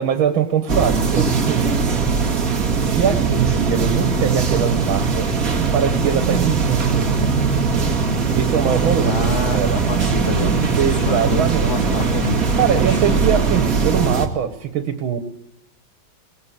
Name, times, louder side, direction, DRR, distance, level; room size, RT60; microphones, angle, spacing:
voice 1, 0.0-1.8 2.8-5.3 5.7-7.2 8.4-9.8 10.8-11.9 12.5-15.2, right 8 dB, 90° right, 8 dB, 2.1 m, -22 dB
sound 1, 0.7-14.3, right 5 dB, 45° right, 2.2 m, -20 dB
voice 2, 9.0-13.3, left 4 dB, 75° left, 4 dB, 3.4 m, -28 dB
22.0 x 18.5 x 8.2 m, 0.76 s
omnidirectional pair, 2.2 m